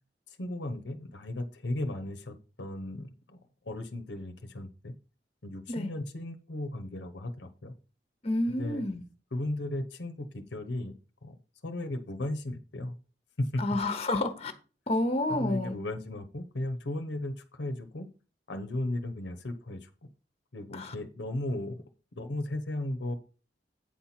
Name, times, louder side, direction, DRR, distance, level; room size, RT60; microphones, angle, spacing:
voice 1, 0.3-3.4 3.6-4.9 5.4-7.7 8.6-8.8 9.3-10.9 11.2-11.4 11.6-12.9 13.4-13.6 15.3-18.1 18.5-20.1 20.5-21.8 22.1-23.1, left 1 dB, 75° left, 0.9 m, -35 dB
voice 2, 8.2-9.0 13.6-14.5 14.9-15.8 20.7-20.9, left 1 dB, 35° left, 1.0 m, -29 dB
8.8 x 4.4 x 5.7 m
head